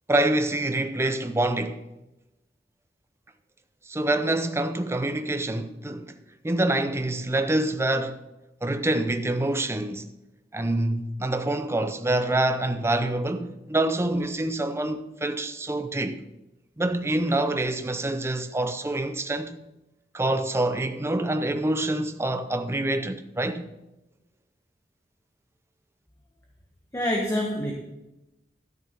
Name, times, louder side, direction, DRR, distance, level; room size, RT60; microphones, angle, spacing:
voice 1, 0.1-1.8 3.9-6.2 6.4-8.2 8.6-10.1 10.5-16.2 16.8-19.6 20.1-23.7, right 1 dB, 15° right, 0.6 m, -26 dB
voice 2, 26.9-27.7, left 1 dB, 15° left, 1.2 m, -26 dB
12.5 x 6.8 x 5.2 m
head